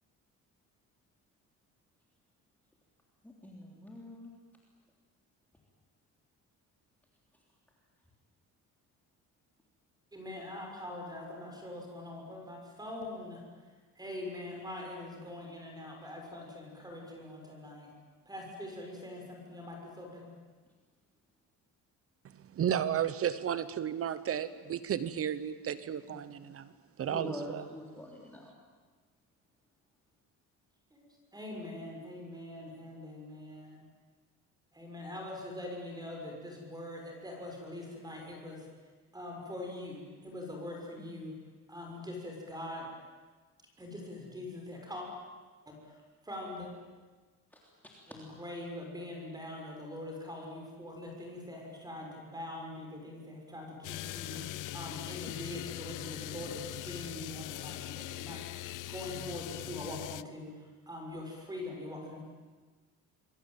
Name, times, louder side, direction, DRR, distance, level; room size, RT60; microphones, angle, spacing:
voice 1, 3.2-4.3 27.1-28.5 47.5-48.2 54.4-54.6, equal, 5° left, -2 dB, 3.4 m, -45 dB
voice 2, 10.1-13.4 13.9-17.9 18.2-20.3 30.9-33.8 34.7-38.7 39.1-41.4 41.7-42.9 43.8-45.1 45.7-46.7 48.1-62.2, left 1 dB, 10° right, 1 dB, 6.5 m, -43 dB
voice 3, 22.3-26.7 27.0-27.6, right 9 dB, 45° right, 14 dB, 1.0 m, -33 dB
sound 1, 53.8-60.2, left 15 dB, 70° left, 0.8 m, -41 dB
27.5 x 22.5 x 9.2 m, 1.4 s
cardioid pair, 150°, 32 cm